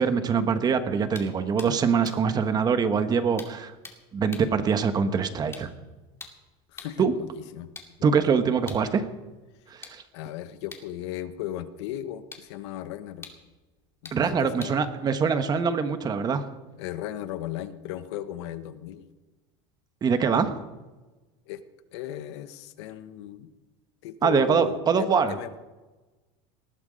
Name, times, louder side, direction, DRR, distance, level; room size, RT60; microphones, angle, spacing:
voice 1, 0.0-3.7 4.1-5.7 7.0-7.1 8.0-9.0 9.7-10.0 14.1-16.4 20.0-20.6 24.2-25.3, right 6 dB, 30° right, 9 dB, 1.3 m, -24 dB
sound 1, 1.1-7.1 7.6-16.1, left 4 dB, 20° left, 2.5 m, -50 dB
voice 2, 6.7-7.7 10.1-13.3 14.0-14.8 16.8-19.1 21.5-21.6 21.9-23.5 24.0-25.5, left 12 dB, 80° left, 11 dB, 1.2 m, -36 dB
19.5 x 12.0 x 5.2 m, 1.2 s
supercardioid pair, 130°, 14 cm